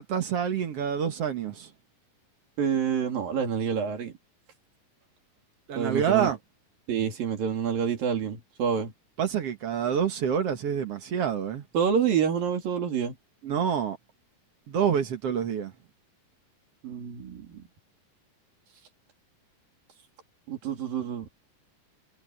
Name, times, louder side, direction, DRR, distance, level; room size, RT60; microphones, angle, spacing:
voice 1, 0.0-1.7 5.7-6.4 9.2-11.7 13.4-14.0 14.7-15.7, right 8 dB, 55° right, 2.1 m, -27 dB
voice 2, 2.6-4.1 5.7-6.3 6.9-8.9 11.7-13.1 16.8-17.6 20.5-21.3, right 7 dB, 80° right, 4.7 m, -27 dB
omnidirectional pair, 4.0 m